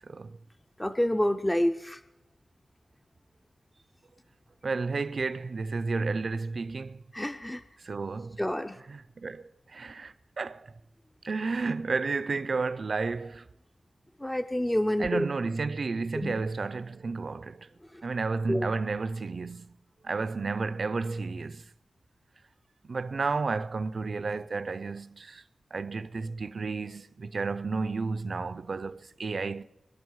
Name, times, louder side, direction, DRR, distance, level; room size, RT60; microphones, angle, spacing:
voice 1, 0.1-0.4 4.6-7.0 7.8-8.4 8.9-10.7 11.2-13.5 15.0-17.7 18.0-19.7 20.0-21.6 22.9-25.4 25.7-29.6, right 4 dB, 50° right, 0.5 m, -32 dB
voice 2, 0.8-2.0 7.1-7.6 8.4-8.8 14.2-15.3 16.2-16.4 17.9-18.0 18.5-18.7, left 1 dB, 10° left, 0.5 m, -28 dB
23.0 x 11.0 x 4.7 m
wide cardioid pair, 135°, 0 cm